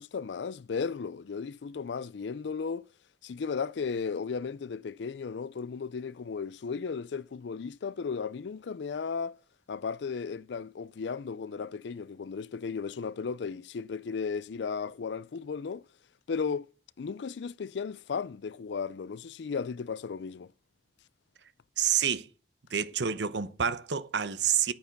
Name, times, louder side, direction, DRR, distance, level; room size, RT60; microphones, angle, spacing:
voice 1, 0.0-2.9 3.2-9.4 9.7-15.8 16.3-16.7 17.0-20.5, left 5 dB, 80° left, 0.4 m, -35 dB
voice 2, 21.8-22.3 22.7-24.7, right 8 dB, 75° right, 0.8 m, -28 dB
9.5 x 8.7 x 5.9 m
head